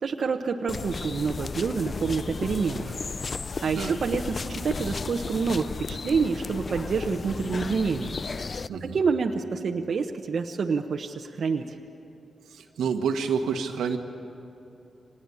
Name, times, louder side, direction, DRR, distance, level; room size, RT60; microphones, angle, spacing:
voice 1, 0.0-3.0 3.6-8.1 8.8-11.8, right 5 dB, 65° right, 3 dB, 1.0 m, -27 dB
sound 1, 0.7-8.7, left 4 dB, 50° left, 0.5 m, -34 dB
voice 2, 8.7-9.0 12.5-14.0, right 6 dB, 90° right, 5 dB, 1.5 m, -28 dB
25.0 x 19.5 x 8.5 m, 3.0 s
supercardioid pair, 50°, 0 cm